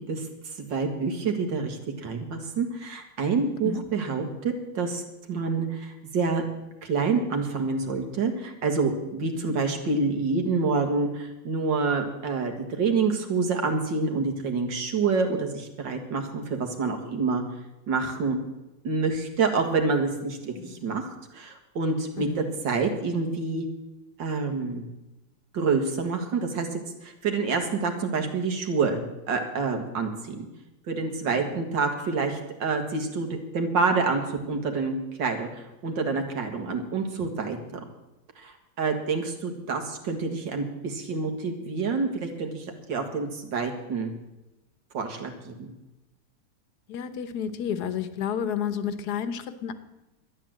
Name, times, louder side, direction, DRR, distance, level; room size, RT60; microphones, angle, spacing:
voice 1, 0.1-5.0 5.3-6.4 6.8-17.4 17.9-18.4 18.8-23.7 24.2-24.9 25.5-29.0 29.3-30.5 30.9-37.8 38.4-44.1 44.9-45.7, right 4 dB, 80° right, 4 dB, 2.4 m, -27 dB
voice 2, 20.5-20.9 22.1-22.5 31.4-31.5 36.6-36.9 46.9-49.7, left 8 dB, 65° left, 12 dB, 1.4 m, -32 dB
12.0 x 10.5 x 7.6 m, 1.0 s
omnidirectional pair, 2.0 m